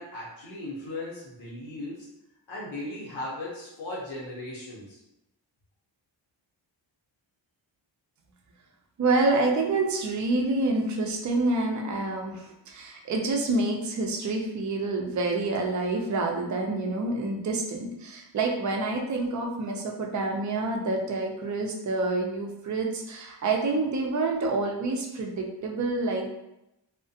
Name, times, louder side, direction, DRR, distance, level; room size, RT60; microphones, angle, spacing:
voice 1, 0.0-2.1 2.5-5.0, left 1 dB, 90° left, -5 dB, 0.8 m, -37 dB
voice 2, 9.0-26.3, right 2 dB, 40° right, 1 dB, 0.4 m, -27 dB
2.4 x 2.1 x 2.6 m, 0.88 s
wide cardioid pair, 105°, 45 cm